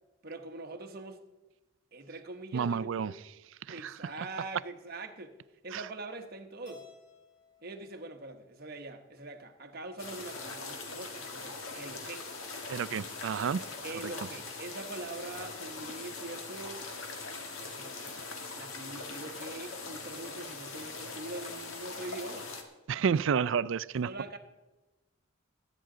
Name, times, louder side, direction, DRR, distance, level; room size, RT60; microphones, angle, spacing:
voice 1, 0.2-1.2 1.9-3.1 3.7-5.4 5.6-6.9 7.6-12.3 13.8-16.8 17.6-18.1 18.6-22.5 23.2-23.6 24.0-24.4, right 2 dB, 45° right, 1.0 m, -43 dB
voice 2, 2.5-3.1 3.7-4.1 5.7-5.8 12.7-13.6 22.9-24.1, right 6 dB, 65° right, 0.3 m, -30 dB
Keyboard (musical), 6.7-9.0, left 5 dB, 50° left, 4.4 m, -57 dB
sound 1, 10.0-22.6, left 3 dB, 80° left, 1.7 m, -42 dB
21.0 x 9.3 x 3.8 m
head